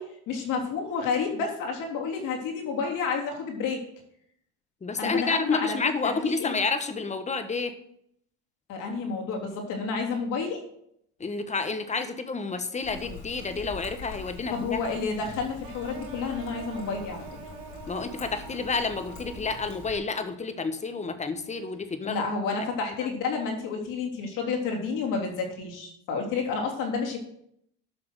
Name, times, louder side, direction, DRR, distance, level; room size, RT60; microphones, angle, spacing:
voice 1, 0.0-3.8 5.0-6.6 8.7-10.6 14.5-17.2 22.0-27.2, left 5 dB, 60° left, 1 dB, 3.3 m, -30 dB
voice 2, 4.8-7.7 11.2-14.8 17.9-22.2, left 4 dB, 20° left, 9 dB, 1.4 m, -30 dB
Trickle dribble, 12.8-20.0, left 4 dB, 80° left, 3.9 m, -44 dB
sound 1, 15.6-20.5, right 5 dB, 60° right, 2.4 m, -45 dB
11.5 x 5.9 x 6.4 m, 0.73 s
supercardioid pair, 95°, 35 cm